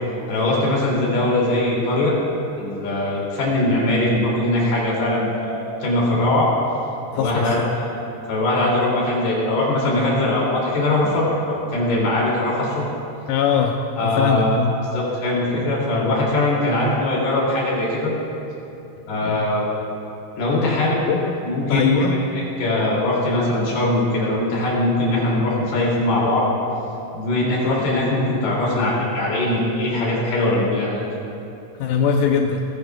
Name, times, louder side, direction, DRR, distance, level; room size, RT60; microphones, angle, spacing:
voice 1, 0.3-2.2 2.6-6.5 7.1-12.7 14.0-14.6 14.9-18.1 19.1-19.7 20.4-21.0 21.4-22.2 22.6-26.4 27.1-31.0, left 1 dB, 70° left, -5 dB, 4.7 m, -21 dB
voice 2, 7.2-7.8 13.3-14.8 19.2-19.5 21.1-21.4 21.7-22.2 31.8-32.7, left 6 dB, 90° left, 3 dB, 1.9 m, -21 dB
21.5 x 15.0 x 2.3 m, 2.8 s
omnidirectional pair, 4.7 m